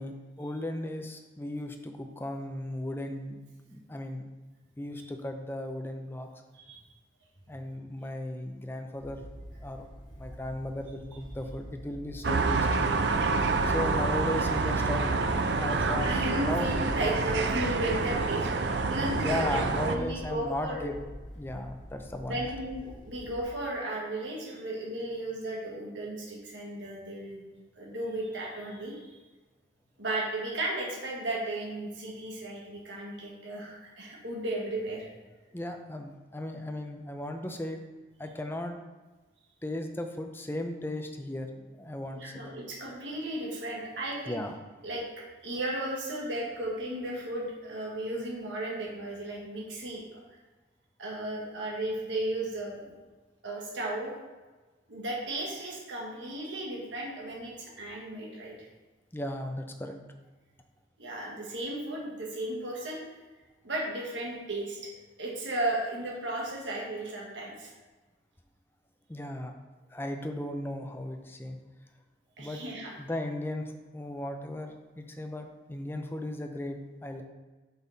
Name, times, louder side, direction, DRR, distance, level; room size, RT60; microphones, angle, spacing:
voice 1, 0.0-3.4 3.7-4.3 4.8-6.3 7.5-9.3 9.6-9.9 10.2-12.9 13.6-15.2 15.6-16.1 16.4-16.7 19.2-21.0 21.4-22.4 35.5-37.8 38.2-38.8 39.6-42.6 44.3-44.6 59.1-60.0 69.1-69.5 69.9-71.6 72.4-72.6 73.0-77.2, left 1 dB, 10° left, 5 dB, 0.5 m, -36 dB
sound 1, 8.9-23.4, equal, 45° left, 1.3 m, -46 dB
sound 2, 12.2-20.0, right 3 dB, 65° right, 0.5 m, -27 dB
voice 2, 16.0-20.9 22.3-27.5 27.8-29.0 30.0-35.1 42.1-44.4 44.8-45.0 45.4-50.2 51.0-52.9 53.4-54.1 54.9-58.7 61.0-63.2 63.6-64.9 65.2-67.7 72.4-72.9, right 1 dB, 80° right, -3 dB, 1.5 m, -35 dB
6.3 x 5.4 x 4.0 m, 1.2 s
head